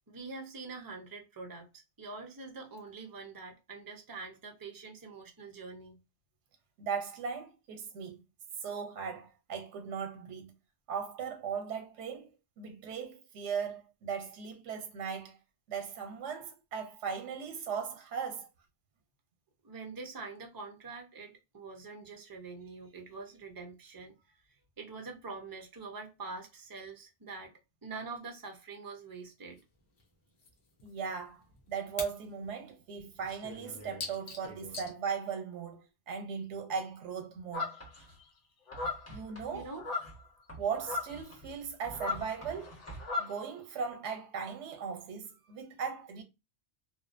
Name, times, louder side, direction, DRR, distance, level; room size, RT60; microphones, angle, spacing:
voice 1, 0.1-6.0 19.6-24.4 24.8-27.5 27.8-29.6 39.5-39.8, right 4 dB, 35° right, 0.3 m, -45 dB
voice 2, 6.8-8.2 8.6-10.5 10.9-12.3 12.6-15.4 15.7-18.5 30.8-35.8 36.1-37.7 39.1-39.7 40.6-42.7 43.2-46.2, right 6 dB, 90° right, 0.9 m, -38 dB
sound 1, 29.6-29.7 30.0-30.1 30.4-30.5 30.8-32.2 32.4-32.5 33.0-34.9, left 4 dB, 65° left, 1.0 m, -43 dB
sound 2, 37.5-38.0 38.7-39.2 39.8-40.2 40.8-41.2 41.9-43.4, left 3 dB, 90° left, 1.0 m, -36 dB
Writing, 37.8-38.2 38.7-43.1, right 2 dB, 15° left, 1.1 m, -50 dB
2.6 x 2.0 x 2.4 m
omnidirectional pair, 1.2 m